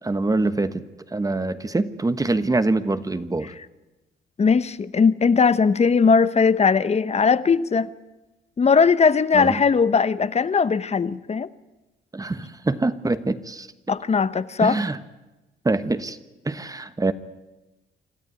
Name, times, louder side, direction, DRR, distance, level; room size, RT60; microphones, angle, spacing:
voice 1, 0.0-3.5 9.3-9.6 12.1-13.9 14.6-15.0 15.6-16.2 16.4-17.1, right 2 dB, 20° right, 1.2 m, -25 dB
voice 2, 4.4-7.9 8.6-11.5 13.9-14.8, left 5 dB, 35° left, 1.0 m, -19 dB
26.5 x 14.0 x 9.7 m
cardioid pair, 90°, 20 cm